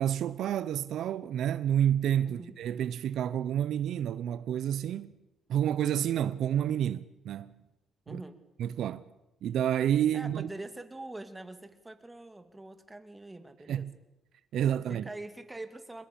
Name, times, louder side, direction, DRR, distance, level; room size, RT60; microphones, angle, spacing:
voice 1, 0.0-5.2 5.5-7.6 8.1-8.2 8.6-9.0 9.4-10.5 13.7-13.9 14.5-15.0, right 10 dB, 75° right, 0.8 m, -29 dB
voice 2, 8.1-8.4 10.1-13.9 14.9-16.0, right 2 dB, 15° right, 2.8 m, -44 dB
23.5 x 21.0 x 8.8 m
cardioid pair, 90°, 0 cm